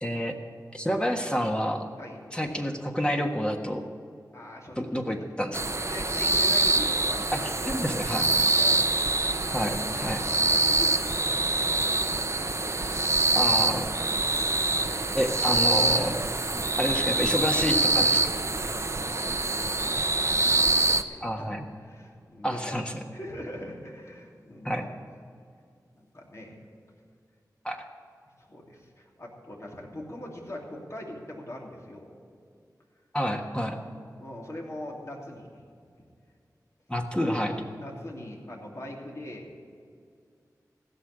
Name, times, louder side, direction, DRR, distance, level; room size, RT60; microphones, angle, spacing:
voice 1, 0.0-0.3 0.7-1.8 2.3-3.9 4.8-5.5 7.3-8.5 9.5-10.2 13.3-13.9 15.1-16.2 16.8-18.3 21.2-21.6 22.4-22.9 24.6-24.9 27.6-27.8 33.1-33.8 36.9-37.6, equal, 15° left, 2 dB, 1.4 m, -28 dB
voice 2, 4.3-5.3 5.9-9.0 9.4-9.8 10.2-13.1 18.6-21.6 21.8-22.8 23.1-24.8 26.0-26.6 28.4-32.1 34.2-35.6 37.8-39.6, left 1 dB, 45° left, -2 dB, 2.9 m, -42 dB
sound 1, 5.5-21.0, right 2 dB, 45° right, 0.7 m, -25 dB
15.5 x 6.5 x 9.8 m, 2.2 s
cardioid pair, 45°, 7 cm